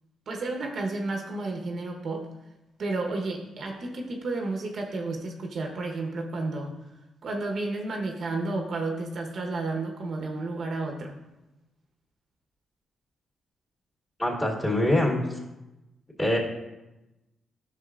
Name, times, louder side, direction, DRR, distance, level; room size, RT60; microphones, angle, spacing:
voice 1, 0.3-2.3 2.8-6.8 7.2-11.2, right 2 dB, 60° right, 1 dB, 1.0 m, -31 dB
voice 2, 14.2-15.2 16.2-16.4, left 1 dB, 20° left, -5 dB, 2.9 m, -24 dB
11.0 x 6.3 x 2.5 m, 0.99 s
supercardioid pair, 60°, 0 cm